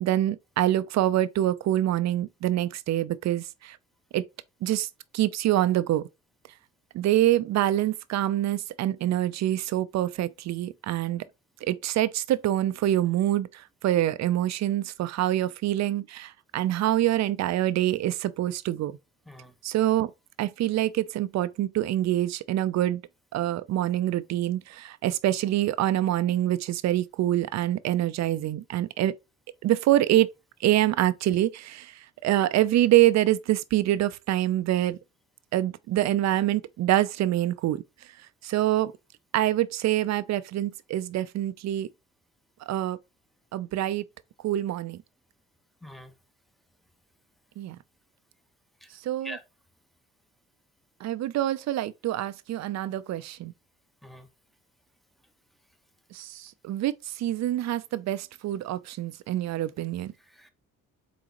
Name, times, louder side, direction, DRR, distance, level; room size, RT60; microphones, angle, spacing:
voice 1, 0.0-3.8 4.1-4.2 4.6-4.9 5.1-6.1 6.9-11.2 11.6-19.0 19.6-20.1 20.4-23.0 23.3-29.1 29.6-30.3 30.6-35.0 35.5-38.1 38.4-38.9 39.3-41.9 42.7-43.0 43.5-44.0 44.4-45.0 47.6-47.8 49.0-49.4 51.0-53.5 56.1-60.1, right 13 dB, 55° right, 0.4 m, -25 dB
voice 2, 45.8-46.1 48.8-48.9 49.2-49.4 54.0-54.3 60.3-60.5, equal, ahead, 0.7 m, -43 dB
4.0 x 3.8 x 2.9 m
cardioid pair, 85°, 32 cm